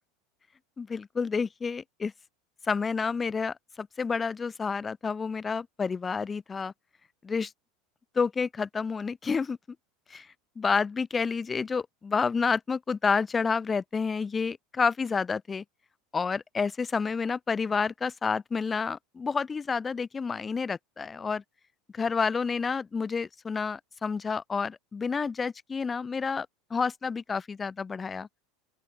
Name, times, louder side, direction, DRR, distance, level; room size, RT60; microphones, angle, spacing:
voice 1, 0.8-2.1 2.6-6.7 7.2-7.5 8.1-9.6 10.1-10.3 10.6-15.6 16.1-21.4 21.9-28.3, left 5 dB, 15° left, 4.6 m, -29 dB
open air
supercardioid pair, 135°, 0 cm